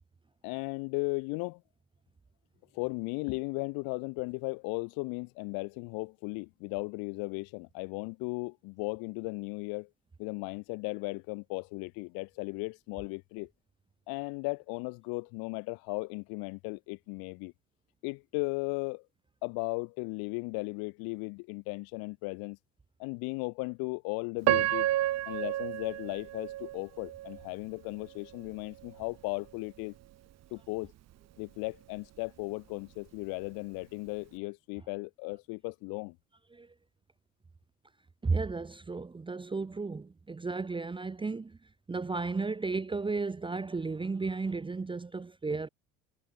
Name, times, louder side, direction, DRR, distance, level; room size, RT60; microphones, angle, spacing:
voice 1, 0.4-1.6 2.7-9.9 10.2-13.5 14.1-17.5 18.0-19.0 19.4-22.6 23.0-24.9 25.3-29.9 30.5-30.9 31.4-36.2, left 30 dB, 60° left, 4.3 m, -36 dB
Piano, 24.4-27.5 28.0-28.1 28.8-29.0, right 14 dB, 40° right, 1.1 m, -30 dB
voice 2, 38.2-41.6 41.9-45.7, right 4 dB, 10° right, 0.9 m, -34 dB
figure-of-eight pair, 65°, 41 cm